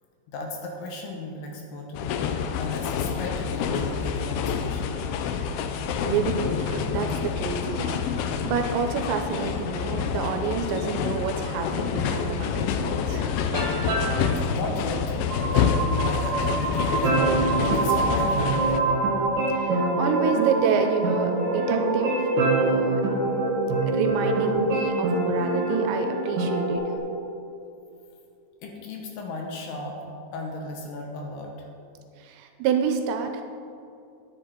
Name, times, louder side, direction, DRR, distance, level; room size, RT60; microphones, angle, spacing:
voice 1, 0.3-5.0 13.1-13.3 14.5-19.0 19.7-19.8 28.6-30.0 30.3-31.7, left 2 dB, 75° left, 1 dB, 2.8 m, -35 dB
sound 1, 1.9-18.8, left 7 dB, 90° left, 2.3 m, -27 dB
voice 2, 6.0-13.6 14.2-14.5 19.5-22.2 22.6-23.0 23.9-26.8 32.2-33.4, right 6 dB, 85° right, 5 dB, 2.7 m, -28 dB
sound 2, 13.5-14.4 17.0-26.8, right 3 dB, 65° right, 2.3 m, -27 dB
sound 3, 15.3-27.0, right 2 dB, 30° right, 0.6 m, -28 dB
10.0 x 9.1 x 4.5 m, 2.6 s
omnidirectional pair, 5.3 m